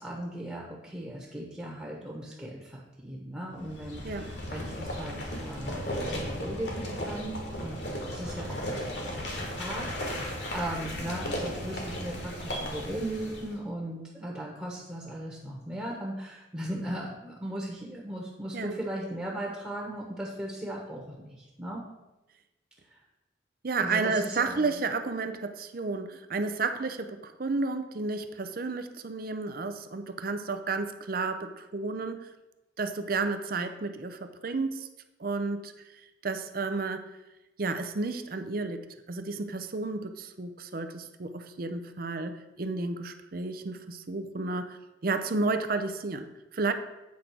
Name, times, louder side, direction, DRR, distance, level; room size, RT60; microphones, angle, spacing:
voice 1, 0.0-21.8 22.9-23.0 23.8-24.7, right 1 dB, 10° right, -3 dB, 1.2 m, -38 dB
sound 1, 3.6-13.6, equal, 60° left, 1.7 m, -35 dB
voice 2, 23.6-32.3 32.8-34.9 35.2-35.7 36.2-37.1 37.6-38.8 39.1-46.7, right 3 dB, 45° right, 8 dB, 0.6 m, -32 dB
8.4 x 3.8 x 5.9 m, 0.99 s
head